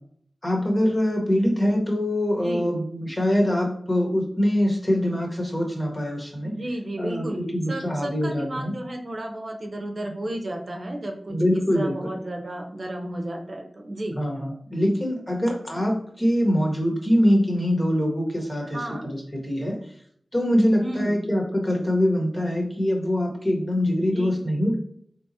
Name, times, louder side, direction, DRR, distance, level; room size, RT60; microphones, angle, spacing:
voice 1, 0.4-6.5 7.0-8.7 11.3-12.1 14.1-18.8 19.4-19.8 20.3-24.7, equal, 30° left, 0 dB, 1.2 m, -23 dB
voice 2, 2.4-2.7 6.4-14.2 18.6-19.1 20.8-21.2 24.1-24.4, right 1 dB, 60° right, 2 dB, 0.7 m, -33 dB
3.4 x 3.0 x 2.7 m, 0.63 s
cardioid pair, 40°, 0 cm